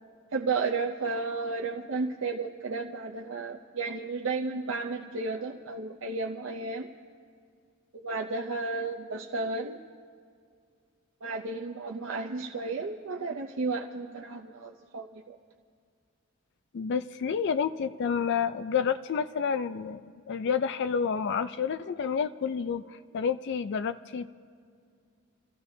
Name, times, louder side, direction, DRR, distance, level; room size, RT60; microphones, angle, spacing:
voice 1, 0.3-6.9 7.9-9.8 11.2-15.4, right 3 dB, 60° right, 0 dB, 0.6 m, -33 dB
voice 2, 16.7-24.3, left 6 dB, 55° left, 10 dB, 0.4 m, -29 dB
28.5 x 15.0 x 2.7 m, 2.3 s
head